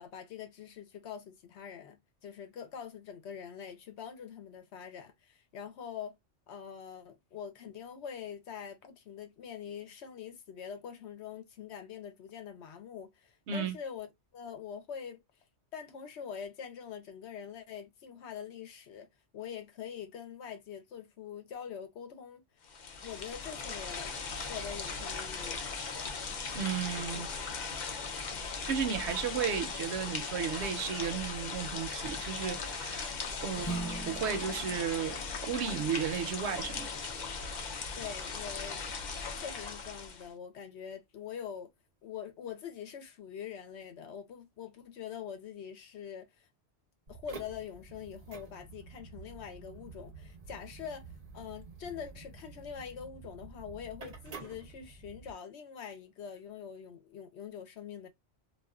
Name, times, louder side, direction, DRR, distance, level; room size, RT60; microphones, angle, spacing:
voice 1, 0.0-6.2 6.5-14.1 14.3-15.2 15.7-19.1 19.3-22.4 23.0-24.1 24.5-25.7 27.1-27.2 33.4-33.8 37.9-38.8 39.3-41.7 42.0-46.5 47.1-51.1 51.3-58.1, left 7 dB, 70° left, 0.9 m, -44 dB
sound 1, 22.6-40.3, left 4 dB, 55° left, 0.5 m, -38 dB
voice 2, 26.5-27.3 28.6-33.1 33.4-36.9, right 7 dB, 75° right, 0.8 m, -34 dB
Acoustic guitar / Strum, 33.6-38.4, right 3 dB, 20° left, 0.7 m, -44 dB
sound 2, 47.1-55.3, right 4 dB, 40° right, 0.6 m, -49 dB
2.4 x 2.4 x 2.2 m
omnidirectional pair, 1.2 m